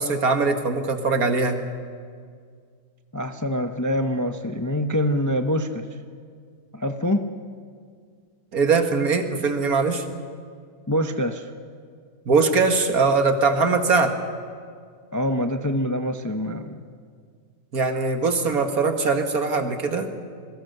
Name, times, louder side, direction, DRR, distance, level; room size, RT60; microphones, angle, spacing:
voice 1, 0.0-1.6 8.5-10.0 12.3-14.2 17.7-20.1, right 4 dB, 60° right, 5 dB, 2.2 m, -21 dB
voice 2, 3.1-5.9 6.7-7.3 10.9-11.5 15.1-16.8, equal, 15° left, 6 dB, 0.7 m, -25 dB
27.5 x 22.0 x 6.7 m, 2.1 s
omnidirectional pair, 1.8 m